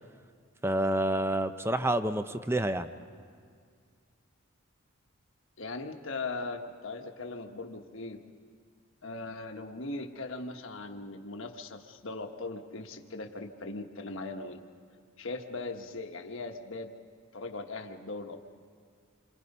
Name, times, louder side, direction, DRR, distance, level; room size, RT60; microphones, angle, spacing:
voice 1, 0.6-2.9, right 1 dB, 10° right, 10 dB, 0.6 m, -28 dB
voice 2, 5.6-8.2 9.0-14.6 15.2-16.9 17.3-18.5, left 3 dB, 65° left, 4 dB, 1.3 m, -39 dB
28.0 x 24.5 x 5.5 m, 2.1 s
head